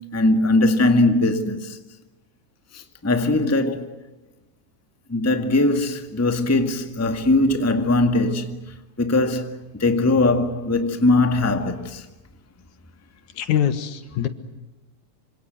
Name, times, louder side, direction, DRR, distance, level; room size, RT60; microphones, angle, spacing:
voice 1, 0.1-1.8 2.7-4.0 5.1-8.6 9.0-12.0, left 2 dB, 5° left, 1.3 m, -20 dB
voice 2, 13.4-14.3, left 10 dB, 85° left, 3.0 m, -23 dB
27.5 x 26.0 x 7.7 m
omnidirectional pair, 3.4 m